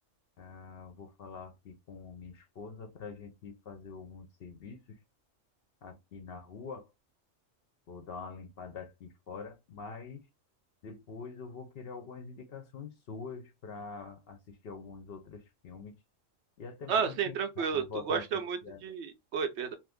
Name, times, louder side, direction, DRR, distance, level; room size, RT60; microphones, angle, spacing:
voice 1, 0.4-5.0 5.8-6.9 7.9-10.2 10.8-15.9 16.6-18.2 18.6-18.8, left 5 dB, 60° left, 0.7 m, -45 dB
voice 2, 16.9-19.7, right 6 dB, 65° right, 0.8 m, -32 dB
2.6 x 2.5 x 3.4 m
omnidirectional pair, 1.3 m